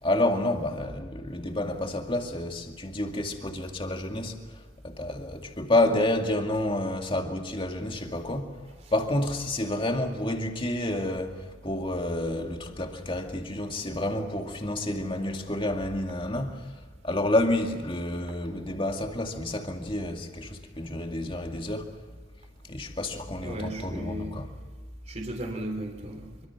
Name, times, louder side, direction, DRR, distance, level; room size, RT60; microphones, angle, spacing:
voice 1, 0.0-8.6 8.9-16.7 17.0-21.9 22.6-24.5, left 1 dB, 25° left, 2.2 m, -29 dB
voice 2, 23.4-24.4 25.1-26.5, right 1 dB, 30° right, 3.6 m, -36 dB
26.0 x 24.5 x 6.0 m
head